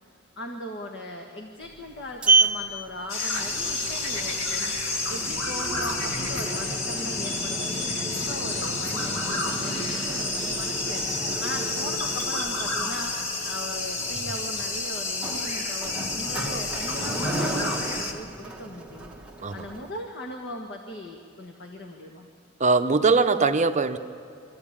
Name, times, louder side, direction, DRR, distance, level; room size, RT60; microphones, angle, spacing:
voice 1, 0.4-19.1 19.5-22.3, left 1 dB, 55° left, 2 dB, 1.6 m, -39 dB
Sliding door, 1.6-19.9, right 3 dB, 5° right, 1.4 m, -32 dB
sound 1, 3.1-18.1, left 3 dB, 75° left, 2.2 m, -30 dB
sound 2, 3.5-10.5, left 1 dB, 40° left, 1.9 m, -40 dB
voice 2, 22.6-24.0, right 4 dB, 35° right, 8 dB, 0.8 m, -21 dB
24.5 x 15.0 x 8.8 m, 2.4 s
head